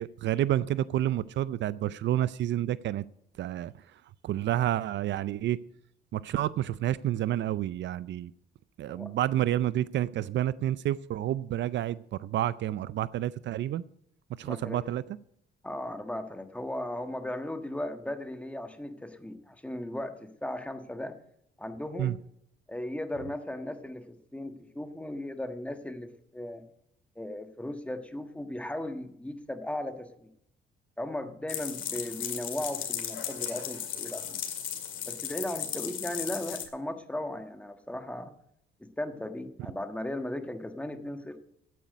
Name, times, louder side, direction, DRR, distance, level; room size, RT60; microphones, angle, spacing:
voice 1, 0.0-3.0 3.4-3.7 4.2-5.6 6.1-8.3 8.8-13.8 14.4-15.0 22.0-22.2, right 12 dB, 65° right, 0.4 m, -29 dB
voice 2, 14.4-14.8 15.6-21.2 21.6-22.2 22.7-26.7 27.1-30.3 31.0-34.4 35.1-38.3 38.8-41.4, left 1 dB, 5° left, 1.4 m, -37 dB
sound 1, 31.5-36.7, left 9 dB, 75° left, 2.1 m, -36 dB
9.2 x 8.5 x 9.2 m
cardioid pair, 90°, 20 cm